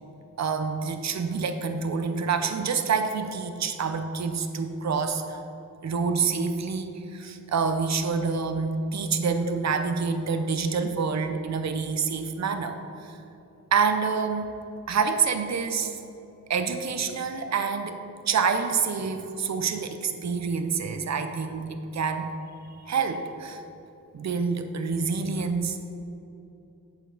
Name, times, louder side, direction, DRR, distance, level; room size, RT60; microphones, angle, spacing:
voice 1, 0.4-5.4 5.8-12.8 13.0-13.2 13.7-14.5 14.9-15.9 16.5-18.0 18.3-22.3 22.9-23.6 24.1-25.9, right 5 dB, 50° right, 7 dB, 0.6 m, -27 dB
8.0 x 6.9 x 4.0 m, 2.8 s
wide cardioid pair, 75°, 35 cm